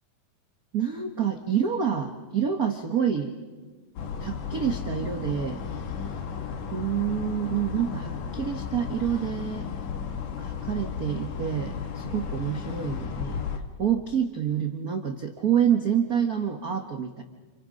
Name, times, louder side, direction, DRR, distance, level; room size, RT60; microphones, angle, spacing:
voice 1, 0.7-3.3 4.2-5.6 6.7-9.7 10.4-13.5 13.8-17.2, right 8 dB, 65° right, 4 dB, 0.9 m, -27 dB
sound 1, 4.0-13.6, left 7 dB, 85° left, 3.2 m, -34 dB
29.5 x 29.0 x 5.2 m, 1.4 s
omnidirectional pair, 3.7 m